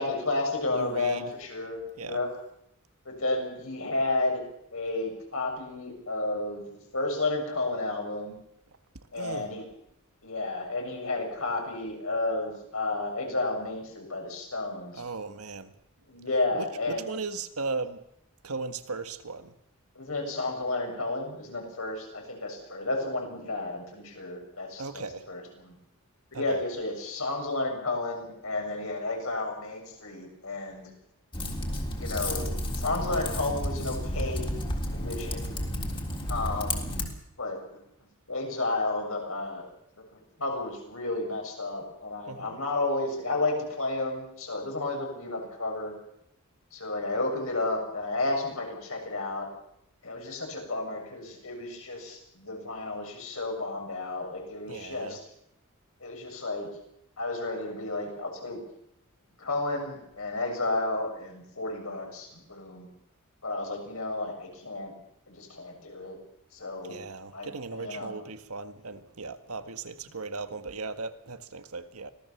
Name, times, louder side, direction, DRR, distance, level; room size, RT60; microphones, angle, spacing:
voice 1, 0.0-2.3 3.1-4.4 4.7-8.4 9.1-9.6 10.2-15.0 16.1-17.1 20.0-25.8 26.3-30.9 32.0-34.6 34.9-35.6 36.3-36.9 37.4-37.8 38.3-39.7 40.1-45.9 46.7-49.5 50.0-55.3 56.0-56.7 57.2-58.6 59.4-62.9 63.4-64.9 65.3-66.2 66.5-67.0 67.3-68.1, left 2 dB, 70° left, 6.9 m, -32 dB
voice 2, 0.7-1.3 2.0-2.2 9.1-9.6 15.0-15.7 16.5-18.0 18.4-19.5 24.8-25.3 26.3-26.6 42.3-42.5 54.7-55.2 66.9-72.1, right 4 dB, 80° right, 1.6 m, -37 dB
Typing, 31.3-37.1, left 1 dB, 25° left, 3.5 m, -32 dB
25.0 x 17.5 x 7.2 m
head